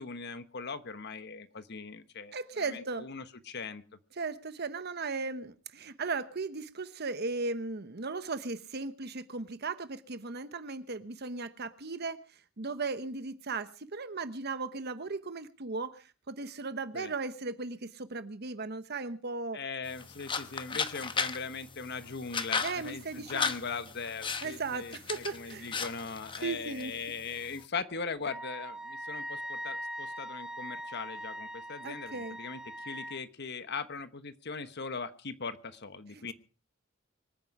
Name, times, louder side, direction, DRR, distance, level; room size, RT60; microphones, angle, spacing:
voice 1, 0.0-3.8 16.9-17.1 19.5-36.3, left 5 dB, 55° left, 11 dB, 1.2 m, -40 dB
voice 2, 2.3-3.1 4.2-12.2 12.6-19.6 22.6-23.5 24.4-25.7 26.4-27.0 31.8-32.4 36.1-36.2, right 3 dB, 55° right, 12 dB, 1.1 m, -37 dB
sound 1, 19.8-27.7, left 5 dB, 25° left, 1.0 m, -37 dB
Wind instrument woodwind instrument, 28.2-33.2, equal, 5° right, 1.0 m, -41 dB
25.0 x 9.6 x 4.8 m, 0.38 s
head